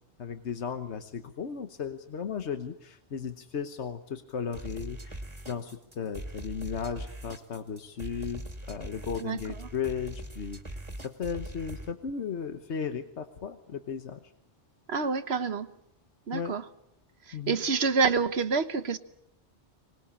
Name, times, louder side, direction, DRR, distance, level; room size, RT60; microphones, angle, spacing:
voice 1, 0.2-14.2 16.3-16.5 17.3-17.6, left 6 dB, 85° left, 8 dB, 1.4 m, -36 dB
sound 1, 4.5-11.9, right 1 dB, 25° right, 2.4 m, -41 dB
voice 2, 14.9-15.7 16.3-16.6 17.3-19.0, right 5 dB, 70° right, 11 dB, 1.4 m, -27 dB
25.0 x 20.0 x 8.6 m, 0.75 s
omnidirectional pair, 1.1 m